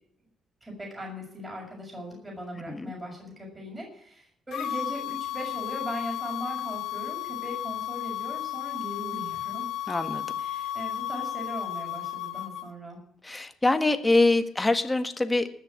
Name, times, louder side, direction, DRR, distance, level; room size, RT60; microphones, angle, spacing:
voice 1, 0.6-9.7 10.4-13.0, equal, 15° right, -2 dB, 6.5 m, -39 dB
sound 1, 4.5-12.7, left 12 dB, 80° left, 1.2 m, -33 dB
voice 2, 9.9-10.3 13.2-15.5, left 2 dB, 15° left, 8 dB, 1.6 m, -24 dB
19.5 x 6.7 x 8.7 m, 0.69 s
cardioid pair, 90°, 0 cm